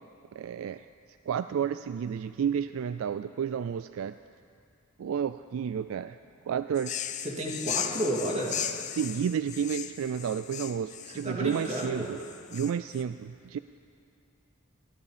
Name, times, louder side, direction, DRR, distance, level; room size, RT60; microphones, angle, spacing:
voice 1, 0.3-0.9 1.3-4.2 5.0-6.2 6.5-7.0 9.0-12.2 12.5-13.6, right 8 dB, 70° right, 12 dB, 0.3 m, -31 dB
sound 1, 6.8-13.0, left 10 dB, 35° left, 0.5 m, -37 dB
voice 2, 7.2-8.8 11.0-12.1, right 1 dB, 30° right, -2 dB, 2.3 m, -32 dB
26.0 x 9.9 x 5.0 m, 2.4 s
head